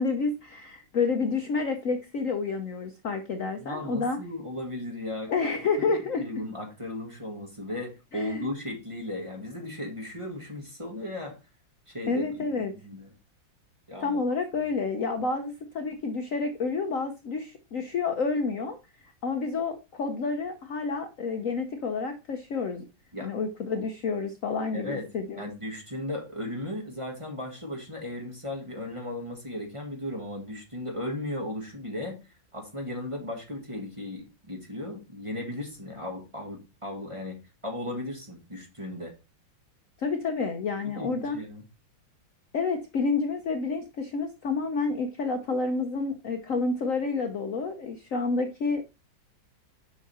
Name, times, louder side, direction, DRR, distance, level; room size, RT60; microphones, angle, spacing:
voice 1, 0.0-4.2 5.3-6.2 8.1-8.5 12.1-12.7 14.0-22.8 23.2-25.5 40.0-41.4 42.5-48.9, left 4 dB, 55° left, 6 dB, 1.0 m, -29 dB
voice 2, 3.6-5.3 5.8-5.9 6.2-11.3 11.9-12.4 12.6-13.1 13.9-14.2 23.1-23.3 24.7-25.0 25.4-39.1 40.9-41.6, left 1 dB, 15° right, 1 dB, 1.6 m, -36 dB
7.4 x 5.7 x 4.2 m, 0.29 s
omnidirectional pair, 2.0 m